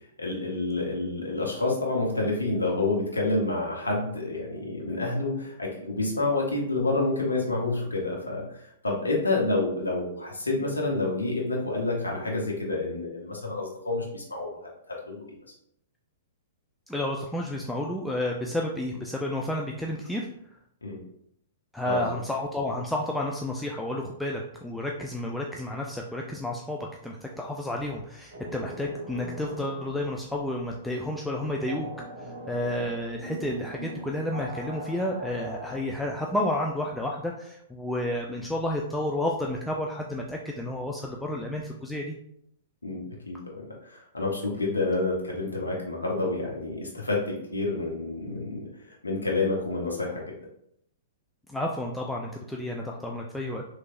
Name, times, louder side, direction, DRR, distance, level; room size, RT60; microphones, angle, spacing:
voice 1, 0.2-15.4 20.8-21.0 21.8-22.2 32.8-32.9 42.8-50.4, left 2 dB, 90° left, -2 dB, 0.8 m, -29 dB
voice 2, 16.9-20.3 21.7-31.9 32.2-42.2 51.5-53.6, left 1 dB, ahead, -1 dB, 0.3 m, -31 dB
sound 1, 28.3-35.9, right 1 dB, 70° right, 1.0 m, -41 dB
3.3 x 3.2 x 2.4 m, 0.72 s
figure-of-eight pair, 110°, 0 cm